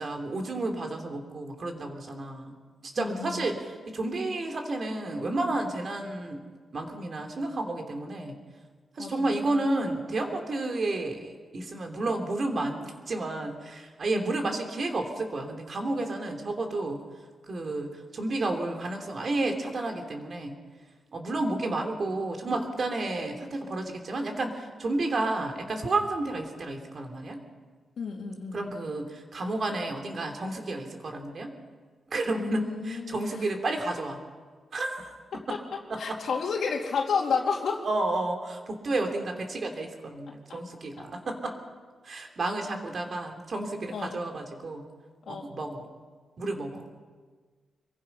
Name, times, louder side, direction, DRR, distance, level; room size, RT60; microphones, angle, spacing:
voice 1, 0.0-2.6 2.9-6.4 6.7-8.4 9.0-17.0 17.5-20.5 21.1-27.4 28.5-31.5 32.1-34.2 34.7-35.1 35.5-35.6 35.9-36.2 37.8-41.5 42.0-44.8 45.3-45.9 46.4-46.9, right 2 dB, 45° right, 4 dB, 3.3 m, -31 dB
voice 2, 3.0-3.4 9.0-9.3 14.1-14.3 28.0-28.7 32.4-33.5 35.3-35.6 36.0-37.9 43.9-44.2 45.3-45.5, left 5 dB, 70° left, -1 dB, 2.7 m, -31 dB
26.5 x 23.0 x 5.6 m, 1.5 s
wide cardioid pair, 120°, 0 cm